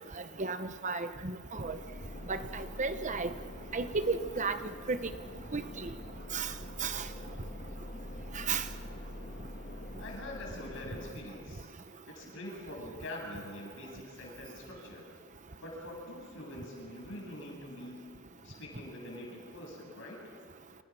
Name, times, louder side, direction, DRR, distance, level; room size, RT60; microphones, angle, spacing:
voice 1, 0.4-1.8 2.3-3.3 3.7-4.6 4.9-5.0 5.5-5.9 6.3-6.5 6.8-7.0 8.3-8.6, right 4 dB, 35° right, 10 dB, 0.9 m, -33 dB
sound 1, 1.5-11.1, left 1 dB, 45° left, 2.5 m, -45 dB
voice 2, 10.0-11.7 12.1-15.0 15.6-18.0 18.4-20.2, left 1 dB, 60° left, 0 dB, 7.8 m, -44 dB
29.5 x 28.0 x 6.2 m, 2.2 s
head